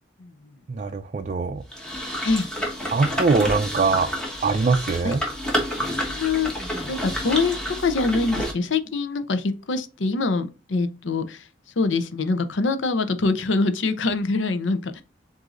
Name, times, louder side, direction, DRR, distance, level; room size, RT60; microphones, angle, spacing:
voice 1, 0.7-1.6 2.9-4.1 4.4-5.2, right 4 dB, 40° right, 0.4 m, -22 dB
sound 1, 1.7-8.5, equal, 5° left, 1.2 m, -29 dB
voice 2, 5.9-6.5 6.9-7.6 7.8-11.4 11.8-15.0, left 3 dB, 80° left, 0.6 m, -24 dB
7.7 x 2.6 x 2.5 m
head